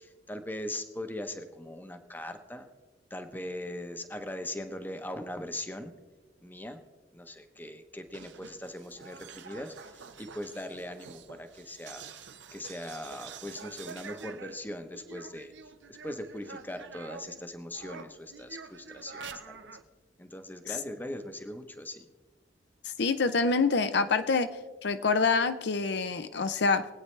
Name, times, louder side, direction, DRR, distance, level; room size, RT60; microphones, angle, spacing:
voice 1, 0.0-2.7 3.1-5.9 6.4-6.8 7.1-12.0 12.5-15.5 15.9-19.7 20.2-22.1, left 1 dB, 10° left, 8 dB, 0.8 m, -40 dB
sound 1, 8.1-17.4 17.7-19.8, right 5 dB, 75° right, 0.8 m, -47 dB
voice 2, 22.8-24.5 24.8-26.9, left 4 dB, 65° left, 10 dB, 0.6 m, -26 dB
22.5 x 8.8 x 3.3 m, 1.3 s
head